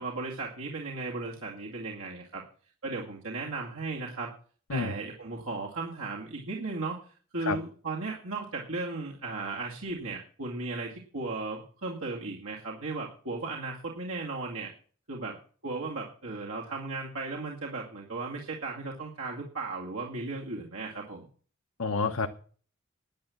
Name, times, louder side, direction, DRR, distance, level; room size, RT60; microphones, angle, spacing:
voice 1, 0.0-2.4 2.8-4.3 4.7-7.0 7.3-14.7 15.1-15.4 15.6-21.3, right 3 dB, 80° right, -3 dB, 2.2 m, -36 dB
voice 2, 21.8-22.3, left 4 dB, 85° left, 6 dB, 1.0 m, -28 dB
10.5 x 10.0 x 7.1 m, 0.43 s
head